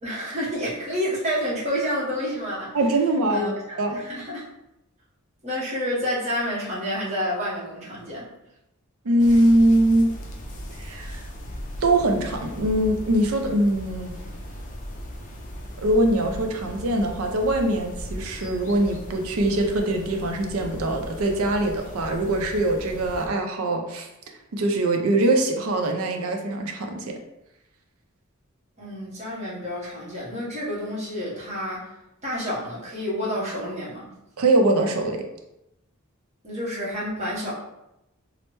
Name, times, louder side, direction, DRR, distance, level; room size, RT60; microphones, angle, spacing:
voice 1, 0.0-2.8 3.3-4.4 5.4-8.3 28.8-31.9 32.2-34.1 36.4-37.5, equal, 30° right, -6 dB, 0.9 m, -29 dB
voice 2, 2.7-4.0 9.1-10.1 10.8-11.2 11.8-14.3 15.8-24.1 24.5-27.2 34.4-35.2, right 1 dB, 90° right, 4 dB, 0.5 m, -22 dB
sound 1, 9.2-23.3, equal, 35° left, 0.4 m, -38 dB
3.2 x 2.0 x 3.0 m, 0.89 s
head